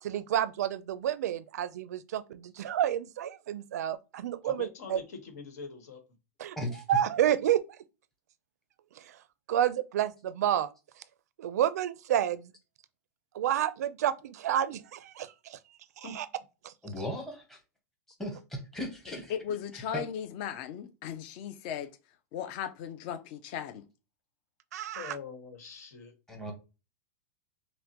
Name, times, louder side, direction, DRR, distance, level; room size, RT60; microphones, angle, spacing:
voice 1, 0.0-5.0 6.4-7.6 9.0-9.2 9.5-10.7 11.4-12.5 13.3-15.6 16.0-16.3 16.6-16.7 24.7-25.2, right 11 dB, 85° right, 0.4 m, -30 dB
voice 2, 4.4-6.0 16.0-16.2 24.9-26.1, left 5 dB, 85° left, 1.2 m, -43 dB
voice 3, 16.8-17.6 18.2-19.2 19.7-20.0 26.3-26.5, equal, 5° left, 0.8 m, -37 dB
voice 4, 19.3-21.9 22.3-23.8, left 9 dB, 40° left, 0.4 m, -37 dB
5.5 x 2.1 x 2.9 m
supercardioid pair, 170°, 8 cm